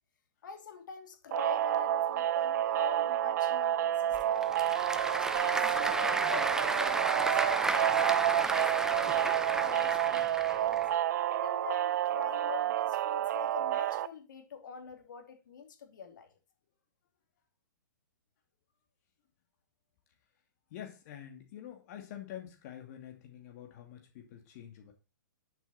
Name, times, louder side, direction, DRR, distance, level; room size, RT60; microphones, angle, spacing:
voice 1, 0.4-4.8 5.2-10.9 11.2-16.3, left 6 dB, 70° left, 2.9 m, -45 dB
sound 1, 1.3-14.1, right 12 dB, 60° right, 0.6 m, -29 dB
Applause / Crowd, 4.1-10.9, right 2 dB, 5° right, 0.7 m, -33 dB
voice 2, 20.7-24.9, left 10 dB, 45° left, 2.6 m, -47 dB
10.5 x 7.0 x 4.3 m
hypercardioid pair, 130°, 11 cm